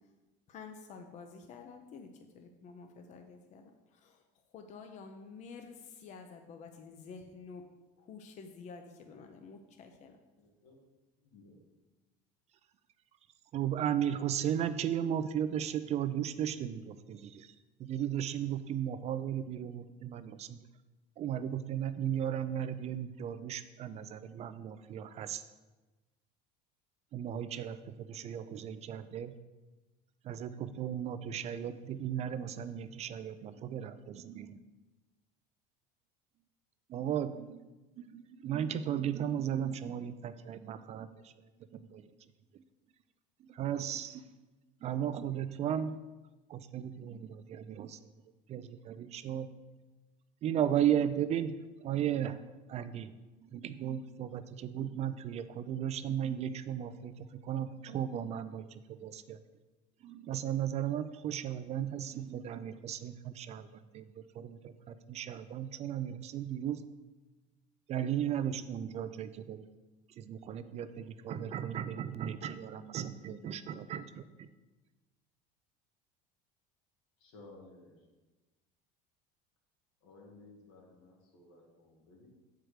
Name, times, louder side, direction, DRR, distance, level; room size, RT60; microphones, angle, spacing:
voice 1, 0.5-2.1 2.3-4.2 4.5-7.6 8.0-10.2, left 5 dB, 40° left, 5 dB, 0.7 m, -50 dB
voice 2, 10.4-10.8 11.2-11.6 77.2-78.1 80.0-82.3, left 2 dB, 80° left, 0 dB, 2.1 m, -57 dB
voice 3, 13.5-20.6 21.2-25.4 27.1-29.3 30.2-34.6 36.9-37.7 38.0-41.3 41.7-42.0 42.5-42.6 43.4-44.3 44.8-45.9 46.5-48.0 48.5-49.5 50.4-52.4 52.7-53.1 53.4-59.4 60.0-66.8 67.9-69.7 70.2-74.5, right 10 dB, 35° right, 12 dB, 0.4 m, -35 dB
7.7 x 4.6 x 5.0 m, 1.2 s
cardioid pair, 135°, 19 cm